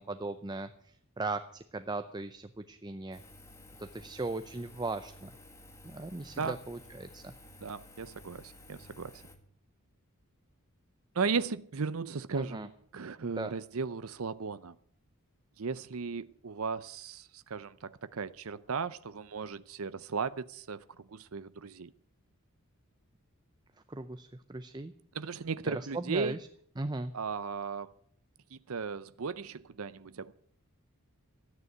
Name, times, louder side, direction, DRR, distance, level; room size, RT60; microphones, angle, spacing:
voice 1, 0.0-3.2 3.8-5.3 5.8-7.3 12.3-12.7 13.2-13.5 23.9-24.9 25.6-26.4 26.8-27.1, right 2 dB, 20° right, 10 dB, 0.5 m, -38 dB
Engine, 3.1-9.4, left 2 dB, 15° left, 1.7 m, -54 dB
voice 2, 7.6-9.2 11.1-14.7 15.6-21.9 25.1-26.4 27.1-27.9 28.5-30.3, right 5 dB, 70° right, 14 dB, 0.6 m, -36 dB
13.5 x 9.6 x 9.2 m, 0.62 s
head